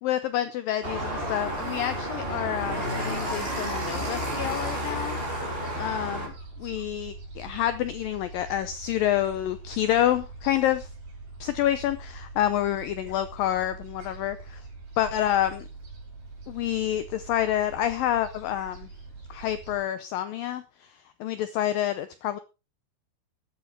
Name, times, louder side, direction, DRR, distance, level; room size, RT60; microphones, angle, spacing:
voice 1, 0.0-5.2 5.8-6.3 6.6-10.9 11.4-14.4 15.0-15.7 16.5-18.9 19.3-20.6 21.2-22.4, left 12 dB, 85° left, 12 dB, 2.0 m, -28 dB
sound 1, 0.8-6.3, equal, 15° right, 3.6 m, -31 dB
Gull seagull, 0.8-19.8, right 3 dB, 65° right, 7.3 m, -43 dB
13.5 x 9.8 x 4.5 m, 0.29 s
omnidirectional pair, 5.0 m